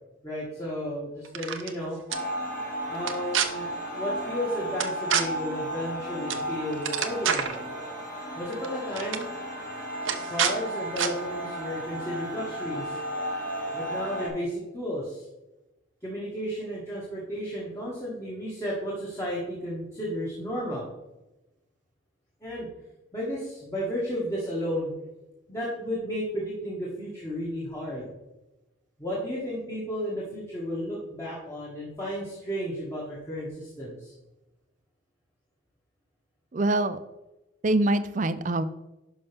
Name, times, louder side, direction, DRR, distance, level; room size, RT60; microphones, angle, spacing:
voice 1, 0.2-2.0 2.9-7.6 8.4-9.3 10.3-13.0 13.7-15.2 16.0-20.8 22.4-22.7 23.1-24.9 25.5-28.1 29.0-34.1, equal, 15° left, -6 dB, 1.8 m, -33 dB
sound 1, 1.2-1.7 2.1-2.2 3.0-3.5 4.8-5.2 6.3-6.5 6.7-7.6 8.5-8.7 8.9-9.2 10.0-10.5 11.0-11.1, right 8 dB, 85° right, 0.8 m, -27 dB
sound 2, 2.1-14.3, equal, 45° left, 2.5 m, -34 dB
voice 2, 36.5-37.0 37.6-38.6, right 2 dB, 40° right, 12 dB, 0.5 m, -24 dB
11.0 x 5.5 x 3.5 m, 1.0 s
head